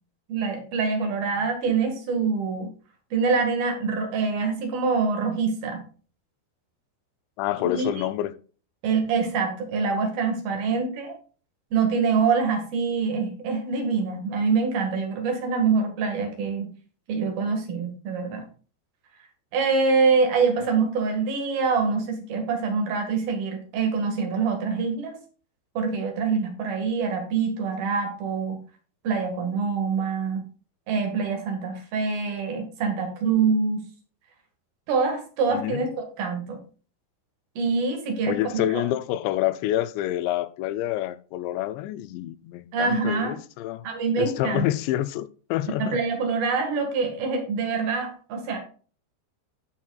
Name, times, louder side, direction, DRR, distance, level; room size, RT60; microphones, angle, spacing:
voice 1, 0.3-2.7 3.1-5.8 7.6-8.0 8.8-11.1 11.7-16.7 17.1-18.4 19.5-25.2 25.7-28.6 29.0-30.4 30.9-33.8 34.9-36.6 37.6-38.8 42.7-43.4 43.8-44.6 45.8-48.6, right 5 dB, 60° right, 3.3 m, -25 dB
voice 2, 7.4-8.4 10.7-10.8 35.5-35.8 38.3-43.8 44.2-46.0, left 14 dB, 85° left, 2.8 m, -27 dB
16.0 x 5.9 x 2.3 m
omnidirectional pair, 5.2 m